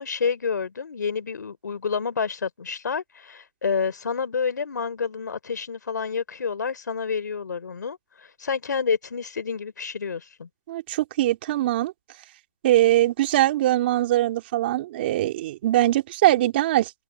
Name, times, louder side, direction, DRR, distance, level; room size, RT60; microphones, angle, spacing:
voice 1, 0.0-10.5, left 5 dB, 85° left, 3.6 m, -29 dB
voice 2, 10.7-11.9 12.6-16.9, right 14 dB, 35° right, 3.0 m, -22 dB
open air
hypercardioid pair, 160°, 9 cm